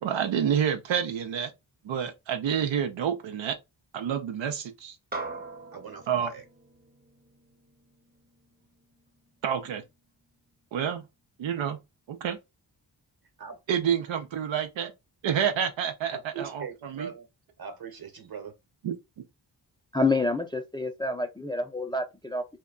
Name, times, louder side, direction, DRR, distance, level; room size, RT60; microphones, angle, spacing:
voice 1, 0.0-1.5 1.8-3.6 3.9-5.0 6.1-6.3 9.4-9.8 10.7-11.1 11.4-11.8 12.1-12.4 13.7-14.9 15.2-17.1 18.8-18.9, right 8 dB, 85° right, 0.6 m, -28 dB
sound 1, 5.1-9.7, right 3 dB, 20° right, 0.7 m, -42 dB
voice 2, 5.7-6.4 13.4-13.6 15.3-15.4 16.1-17.3 17.6-18.5, right 6 dB, 55° right, 1.0 m, -41 dB
voice 3, 19.9-22.6, left 3 dB, 10° left, 0.4 m, -28 dB
2.2 x 2.2 x 3.6 m
cardioid pair, 55°, 45 cm